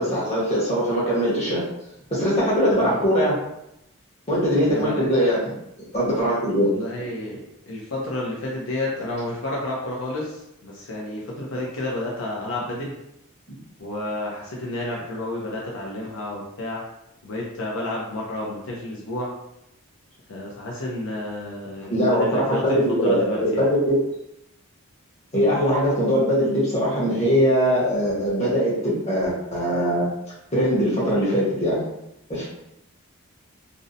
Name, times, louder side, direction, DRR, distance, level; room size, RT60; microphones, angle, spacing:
voice 1, 0.0-1.6 2.1-3.4 4.3-5.4 5.9-6.7 13.5-13.6 21.9-24.0 25.3-30.1 30.5-31.8 32.3-32.5, equal, 30° left, -7 dB, 0.9 m, -21 dB
voice 2, 4.7-5.1 6.6-7.4 7.7-12.9 13.8-16.8 17.2-19.3 20.3-23.6, left 1 dB, 65° left, -3 dB, 0.5 m, -30 dB
2.6 x 2.0 x 2.6 m, 0.83 s
head